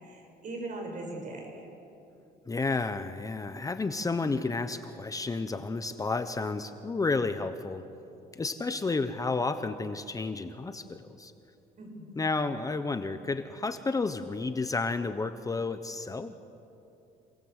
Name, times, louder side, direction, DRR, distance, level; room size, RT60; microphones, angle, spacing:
voice 1, 0.0-1.7 11.8-12.2, right 2 dB, 50° right, 2 dB, 6.9 m, -40 dB
voice 2, 2.5-7.8 8.3-11.3 12.2-16.4, left 3 dB, 20° left, 10 dB, 1.0 m, -31 dB
27.5 x 20.0 x 8.1 m, 2.8 s
cardioid pair, 110°, 17 cm